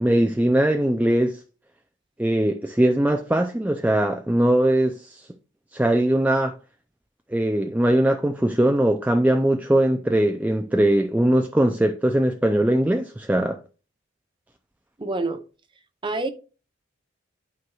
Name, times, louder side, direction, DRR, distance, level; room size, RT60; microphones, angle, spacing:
voice 1, 0.0-1.4 2.2-5.3 5.7-6.5 7.3-13.6, right 1 dB, 10° right, 0.4 m, -21 dB
voice 2, 15.0-15.4 16.0-16.3, right 2 dB, 25° right, 0.8 m, -26 dB
11.5 x 4.6 x 2.3 m
head